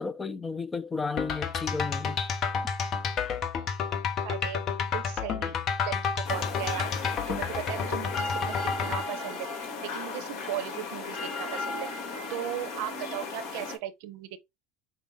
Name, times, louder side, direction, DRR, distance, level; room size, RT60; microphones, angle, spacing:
voice 1, 0.0-2.2, left 4 dB, 20° left, 0.4 m, -33 dB
sound 1, 1.2-9.0, left 6 dB, 45° left, 0.8 m, -30 dB
voice 2, 4.2-4.6 4.9-5.6 5.8-6.9 7.3-9.5 9.8-11.9 12.3-14.4, right 12 dB, 75° right, 0.7 m, -37 dB
sound 2, 6.2-13.8, left 4 dB, 60° left, 1.3 m, -35 dB
5.6 x 2.1 x 3.5 m
supercardioid pair, 110°, 0 cm